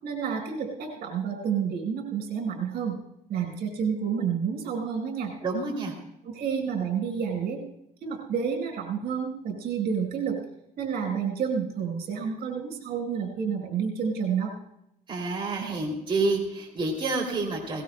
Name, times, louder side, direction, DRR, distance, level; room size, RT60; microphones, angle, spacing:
voice 1, 0.0-3.0 3.3-5.3 6.2-7.6 8.0-10.4 10.8-14.5, right 7 dB, 70° right, 3 dB, 4.4 m, -29 dB
voice 2, 5.4-5.9 15.1-17.8, right 3 dB, 30° right, -2 dB, 2.8 m, -28 dB
20.5 x 19.0 x 2.2 m, 0.82 s
cardioid pair, 110°, 17 cm